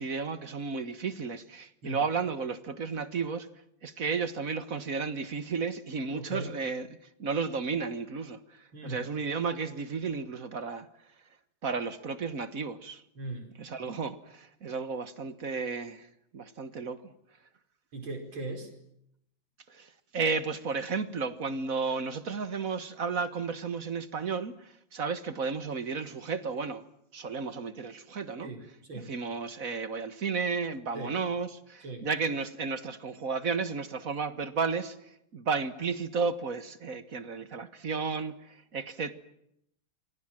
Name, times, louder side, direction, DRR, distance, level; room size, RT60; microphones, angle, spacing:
voice 1, 0.0-3.5 3.8-6.9 7.2-10.9 11.6-13.0 13.6-16.1 16.3-17.1 19.7-26.8 27.1-28.5 28.9-35.0 35.3-39.1, right 5 dB, 45° right, 1.6 m, -33 dB
voice 2, 6.1-6.5 8.7-9.0 13.2-13.5 17.9-18.7 28.4-29.1 30.9-31.1 31.8-32.1, right 2 dB, 70° right, 5.6 m, -39 dB
27.5 x 23.5 x 7.5 m
omnidirectional pair, 2.3 m